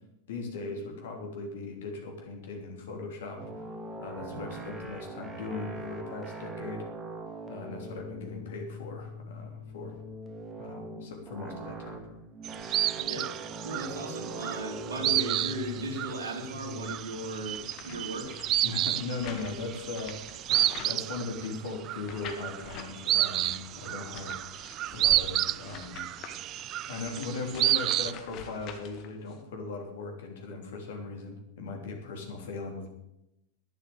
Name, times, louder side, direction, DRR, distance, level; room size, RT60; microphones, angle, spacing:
voice 1, 0.3-3.5 4.0-6.9 7.5-9.9 10.6-12.0 18.6-24.4 24.9-26.0 26.9-32.9, left 3 dB, 60° left, 2 dB, 3.3 m, -38 dB
sound 1, 3.4-19.9, right 1 dB, 15° right, 1.9 m, -42 dB
sound 2, 12.4-28.1, right 14 dB, 35° right, 0.4 m, -31 dB
voice 2, 12.9-13.3 13.6-18.4, right 1 dB, 65° right, 1 dB, 3.4 m, -36 dB
sound 3, 17.5-21.5 22.1-22.9 23.3-29.4, left 7 dB, 40° left, 1.7 m, -47 dB
11.5 x 10.0 x 7.4 m, 0.88 s
figure-of-eight pair, 90°, 0 cm